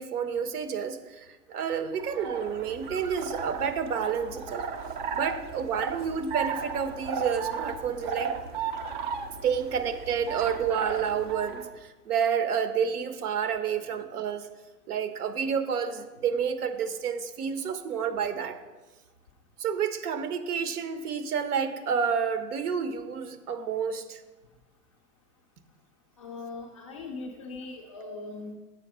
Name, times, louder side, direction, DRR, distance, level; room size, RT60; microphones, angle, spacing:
voice 1, 0.0-4.7 5.1-8.3 9.4-14.5 14.9-18.6 19.6-24.2, right 7 dB, 70° right, 9 dB, 1.2 m, -29 dB
sound 1, 1.9-11.7, right 6 dB, 30° right, 0.5 m, -35 dB
voice 2, 26.2-28.5, left 3 dB, 25° left, 1 dB, 0.4 m, -40 dB
7.6 x 4.7 x 6.2 m, 1.2 s
hypercardioid pair, 140°, 47 cm